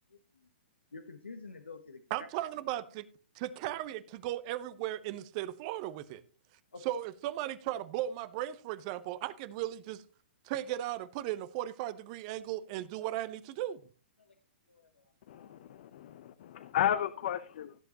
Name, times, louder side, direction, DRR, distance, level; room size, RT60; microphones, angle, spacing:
voice 1, 0.1-0.5 0.9-2.3 6.7-6.8 14.2-14.3 14.7-15.6 17.1-17.2, left 4 dB, 85° left, 7 dB, 1.1 m, -50 dB
voice 2, 2.1-3.0 3.3-6.2 6.8-10.0 10.4-13.8, right 13 dB, 40° right, 15 dB, 0.8 m, -36 dB
voice 3, 15.3-17.8, left 10 dB, 55° left, 12 dB, 0.8 m, -33 dB
16.5 x 8.0 x 2.9 m, 0.35 s
figure-of-eight pair, 120°, 6 cm